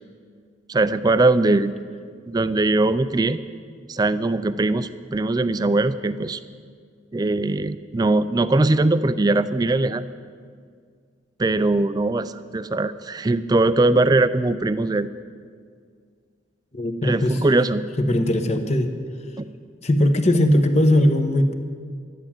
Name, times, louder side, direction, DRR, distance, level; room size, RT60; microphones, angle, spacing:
voice 1, 0.7-1.7 2.3-3.4 3.9-6.4 7.1-10.0 11.4-15.1 17.0-17.8 19.4-19.5, right 2 dB, 20° right, 13 dB, 0.3 m, -21 dB
voice 2, 16.7-17.4 18.0-18.9 19.8-21.5, left 1 dB, 35° left, 7 dB, 1.0 m, -19 dB
12.5 x 10.5 x 7.4 m, 2.1 s
head